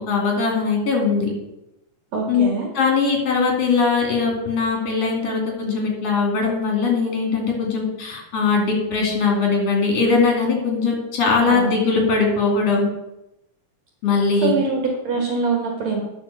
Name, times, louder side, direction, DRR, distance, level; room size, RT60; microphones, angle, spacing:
voice 1, 0.1-1.3 2.3-2.5 2.7-12.9 14.0-14.5, left 4 dB, 50° left, 0 dB, 3.4 m, -20 dB
voice 2, 2.1-2.7 11.4-11.7 14.4-16.0, right 4 dB, 60° right, 0 dB, 2.5 m, -23 dB
9.8 x 5.2 x 6.8 m, 0.89 s
omnidirectional pair, 3.8 m